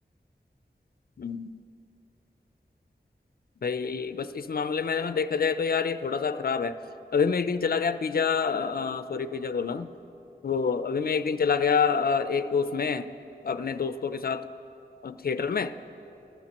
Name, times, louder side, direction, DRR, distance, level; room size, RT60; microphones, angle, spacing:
voice 1, 1.2-1.6 3.6-6.8 7.1-9.9 10.4-13.1 13.4-14.5 15.0-15.7, left 5 dB, 60° left, 11 dB, 0.5 m, -27 dB
20.5 x 14.5 x 3.0 m, 2.8 s
wide cardioid pair, 70°, 17 cm